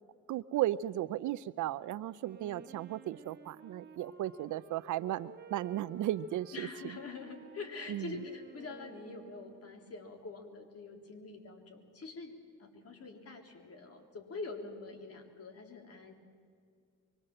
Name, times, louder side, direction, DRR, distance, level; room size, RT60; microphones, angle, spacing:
voice 1, 0.3-6.7 7.9-8.1, right 13 dB, 75° right, 15 dB, 0.6 m, -35 dB
Wind instrument woodwind instrument, 2.2-9.9, right 4 dB, 35° right, 1.8 m, -53 dB
voice 2, 6.5-16.1, left 4 dB, 50° left, 3 dB, 3.7 m, -45 dB
25.0 x 23.0 x 7.7 m, 2.2 s
cardioid pair, 90°, 30 cm